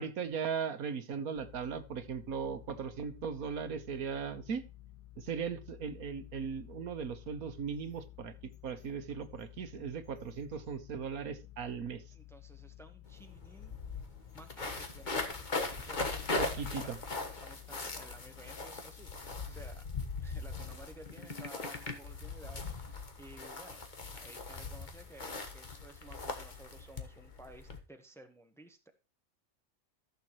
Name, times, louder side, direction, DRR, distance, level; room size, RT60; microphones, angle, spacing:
voice 1, 0.0-4.7 5.2-12.0 16.4-17.0, right 6 dB, 80° right, 10 dB, 1.6 m, -38 dB
sound 1, 1.3-19.3, left 14 dB, 85° left, 2.4 m, -54 dB
voice 2, 12.1-13.8 14.3-16.9 17.4-19.8 20.2-23.8 24.1-28.9, right 2 dB, ahead, 6 dB, 1.1 m, -55 dB
sound 2, 13.0-13.1 13.4-27.8, left 3 dB, 35° left, 1.5 m, -40 dB
15.0 x 6.8 x 3.1 m, 0.29 s
omnidirectional pair, 1.5 m